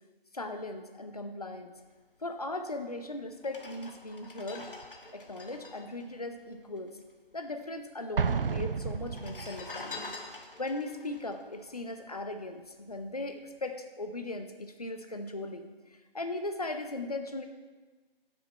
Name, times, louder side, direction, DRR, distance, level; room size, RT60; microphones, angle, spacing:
voice 1, 0.3-1.7 2.2-4.7 5.1-6.9 7.3-10.1 10.6-15.7 16.1-17.5, left 2 dB, 40° left, 7 dB, 0.8 m, -38 dB
sound 1, 2.7-2.8 3.4-7.1 7.3-7.4 7.6-8.3 9.0-12.5 12.9-13.1, left 3 dB, 65° left, 1.3 m, -46 dB
Explosion, 8.2-9.8, right 5 dB, 65° right, 0.5 m, -31 dB
13.0 x 6.5 x 4.3 m, 1.3 s
figure-of-eight pair, 170°, 30 cm